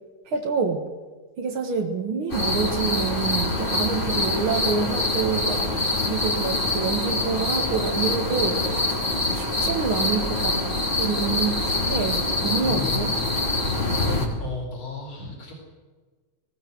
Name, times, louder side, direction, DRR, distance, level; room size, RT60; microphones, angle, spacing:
voice 1, 0.3-0.9 1.4-5.6 6.1-8.8 9.3-10.6 11.0-13.1, right 5 dB, 80° right, 2 dB, 2.6 m, -27 dB
sound 1, 2.3-14.3, left 2 dB, 25° left, 3.5 m, -25 dB
voice 2, 12.6-15.5, left 4 dB, 85° left, 0 dB, 5.1 m, -36 dB
19.0 x 17.5 x 8.0 m, 1.3 s
omnidirectional pair, 2.3 m